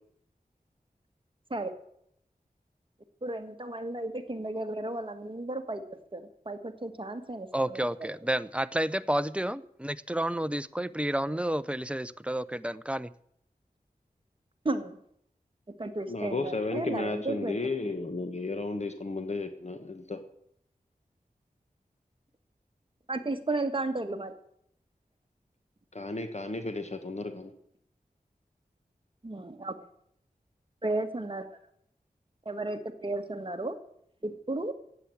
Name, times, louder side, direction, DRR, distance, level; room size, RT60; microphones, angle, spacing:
voice 1, 3.2-7.8 14.6-15.0 15.8-17.9 23.1-24.3 29.2-29.7 30.8-31.4 32.4-33.8 34.2-34.7, right 2 dB, 35° right, 6 dB, 1.7 m, -34 dB
voice 2, 7.5-13.1, right 1 dB, 10° right, 15 dB, 0.6 m, -30 dB
voice 3, 16.1-20.2 25.9-27.5, left 3 dB, 45° left, 7 dB, 1.4 m, -33 dB
15.5 x 8.5 x 9.2 m, 0.72 s
wide cardioid pair, 80°, 15 cm